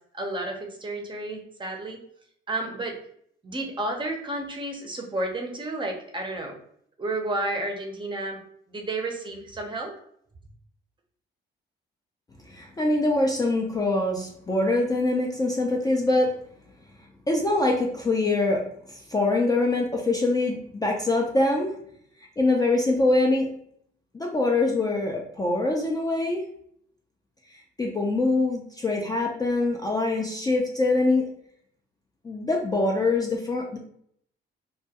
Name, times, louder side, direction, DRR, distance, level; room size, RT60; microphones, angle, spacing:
voice 1, 0.1-2.0 2.5-3.0 3.4-6.6 7.0-8.4 8.7-9.9, right 2 dB, 25° right, 1 dB, 0.6 m, -31 dB
voice 2, 12.5-16.3 17.3-21.7 22.4-23.5 24.1-26.4 27.8-31.3 32.2-33.8, left 2 dB, 20° left, 0 dB, 0.3 m, -24 dB
2.2 x 2.2 x 2.7 m, 0.66 s
cardioid pair, 90°, 20 cm